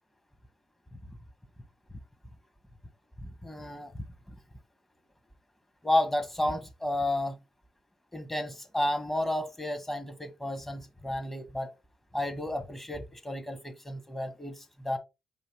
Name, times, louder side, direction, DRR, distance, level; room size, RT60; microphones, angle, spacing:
voice 1, 3.2-3.9 5.8-7.4 8.1-11.7 12.1-15.0, left 1 dB, 10° left, 1.3 m, -32 dB
5.0 x 2.7 x 3.7 m
hypercardioid pair, 45°, 2 cm